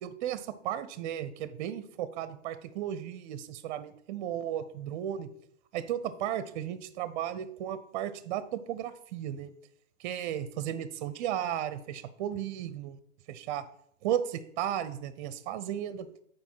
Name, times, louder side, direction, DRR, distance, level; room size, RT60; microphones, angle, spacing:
voice 1, 0.0-5.3 5.7-9.5 10.0-13.0 13.3-13.6 14.0-16.1, right 10 dB, 40° right, 14 dB, 0.6 m, -34 dB
7.1 x 4.7 x 4.5 m, 0.68 s
hypercardioid pair, 120°, 38 cm